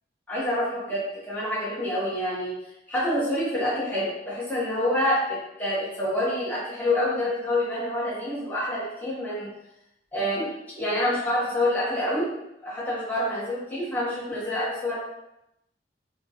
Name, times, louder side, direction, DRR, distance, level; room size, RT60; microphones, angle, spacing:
voice 1, 0.3-2.5 2.9-5.3 5.6-9.5 10.1-10.5 10.8-12.3 12.6-15.0, left 1 dB, 10° left, -8 dB, 0.7 m, -27 dB
2.8 x 2.3 x 2.7 m, 0.87 s
head